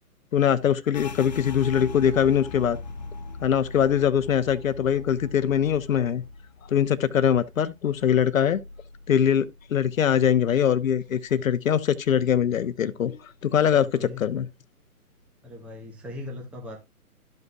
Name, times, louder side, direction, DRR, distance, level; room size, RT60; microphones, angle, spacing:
voice 1, 0.3-2.8 3.4-6.2 6.7-8.6 9.1-14.5, left 9 dB, 60° left, 1.0 m, -22 dB
sound 1, 0.9-10.3 10.6-11.9 12.2-12.7 13.1-13.7, left 4 dB, 30° left, 0.4 m, -41 dB
voice 2, 13.6-14.3 15.4-16.8, left 2 dB, 5° right, 0.8 m, -39 dB
13.0 x 5.5 x 2.3 m
figure-of-eight pair, 135°, 45 cm